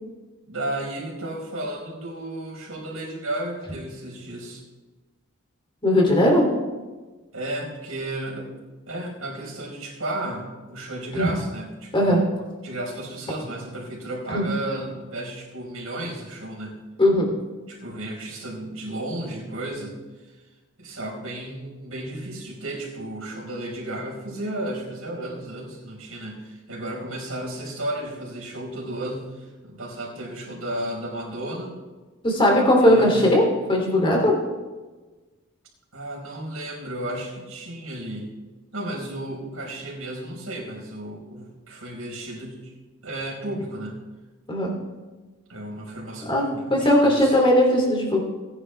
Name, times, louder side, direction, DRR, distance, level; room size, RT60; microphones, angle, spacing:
voice 1, 0.4-4.6 7.3-8.6 8.9-12.2 12.6-16.7 17.7-20.0 20.8-31.7 32.8-33.3 35.9-38.3 38.7-42.7 43.0-44.0 45.5-47.4, right 1 dB, 75° right, -1 dB, 4.7 m, -33 dB
voice 2, 5.8-6.5 11.2-11.3 11.9-12.2 14.3-14.5 17.0-17.3 32.2-34.4 44.5-44.7 46.3-48.2, left 1 dB, 25° left, 0 dB, 2.9 m, -18 dB
19.0 x 10.0 x 3.4 m, 1.3 s
head